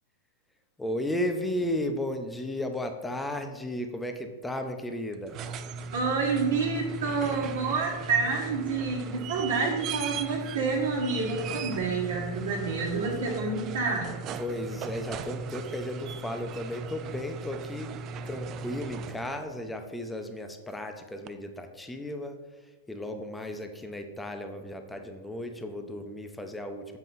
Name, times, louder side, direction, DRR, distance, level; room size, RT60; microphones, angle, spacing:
voice 1, 0.8-5.4 14.4-18.0 18.3-27.0, left 1 dB, 5° left, 6 dB, 0.7 m, -34 dB
sound 1, 5.1-19.5 21.3-21.4, right 4 dB, 30° right, 0.4 m, -37 dB
voice 2, 5.9-14.1, right 4 dB, 75° right, -2 dB, 1.4 m, -28 dB
7.5 x 4.5 x 4.0 m, 1.2 s
hypercardioid pair, 135°, 0 cm